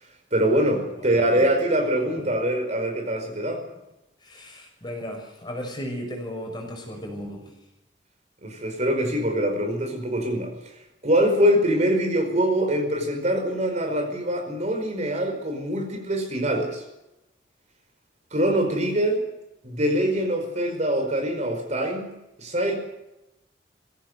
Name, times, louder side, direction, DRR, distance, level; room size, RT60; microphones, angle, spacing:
voice 1, 0.3-3.6 8.4-10.5 11.0-16.8 18.3-19.2 19.6-22.7, right 1 dB, 40° right, 4 dB, 5.0 m, -24 dB
voice 2, 1.0-1.5 2.2-2.3 4.2-7.4, equal, 25° left, 3 dB, 6.2 m, -35 dB
21.5 x 17.0 x 8.1 m, 0.92 s
head